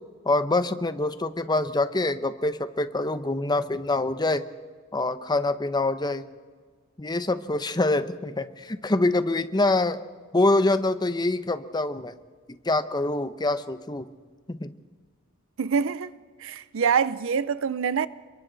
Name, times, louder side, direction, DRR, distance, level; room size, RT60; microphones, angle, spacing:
voice 1, 0.2-4.4 4.9-6.3 7.0-10.0 10.3-12.1 12.7-14.0 14.5-14.7, left 2 dB, 20° left, 0.8 m, -25 dB
voice 2, 15.6-16.1 16.4-18.1, right 6 dB, 65° right, 0.5 m, -25 dB
29.0 x 23.0 x 4.0 m
head